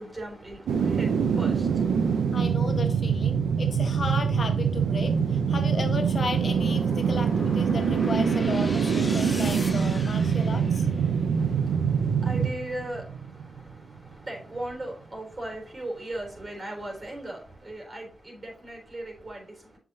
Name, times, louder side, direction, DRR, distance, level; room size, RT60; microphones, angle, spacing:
voice 1, 0.0-2.3 11.3-19.8, right 1 dB, 35° right, 0 dB, 3.6 m, -38 dB
sound 1, 0.7-13.7 14.1-14.2, right 6 dB, 85° right, 0.6 m, -24 dB
voice 2, 2.3-10.9, left 3 dB, 55° left, 5 dB, 1.3 m, -34 dB
sound 2, 4.3-11.6, left 1 dB, 20° left, 1.7 m, -41 dB
7.5 x 5.9 x 2.8 m, 0.42 s
cardioid pair, 60°, 0 cm